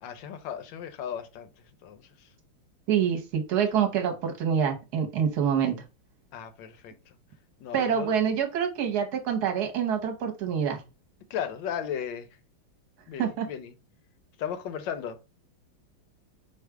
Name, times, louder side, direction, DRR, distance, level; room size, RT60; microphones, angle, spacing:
voice 1, 0.0-1.5 1.8-2.3 6.3-7.2 7.6-8.1 11.3-12.3 13.1-13.7 14.4-15.2, left 8 dB, 70° left, 1.2 m, -36 dB
voice 2, 2.9-5.8 7.7-10.8 13.2-13.5, right 8 dB, 55° right, 1.3 m, -26 dB
4.8 x 2.4 x 4.6 m
omnidirectional pair, 2.3 m